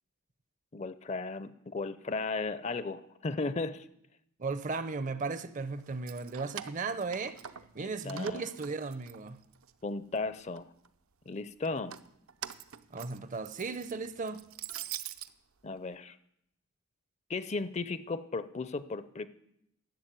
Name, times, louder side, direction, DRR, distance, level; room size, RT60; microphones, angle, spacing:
voice 1, 0.7-3.9 7.8-8.4 9.8-10.6 11.3-11.9 15.6-16.2 17.3-19.3, left 3 dB, 30° left, 0.5 m, -35 dB
voice 2, 4.4-7.4 7.7-9.4 12.9-14.4, right 4 dB, 35° right, 0.6 m, -36 dB
Keys jangling, 5.9-7.8 8.1-9.7 10.1-10.9 11.6-15.3, right 11 dB, 70° right, 0.6 m, -44 dB
11.5 x 7.3 x 9.0 m
head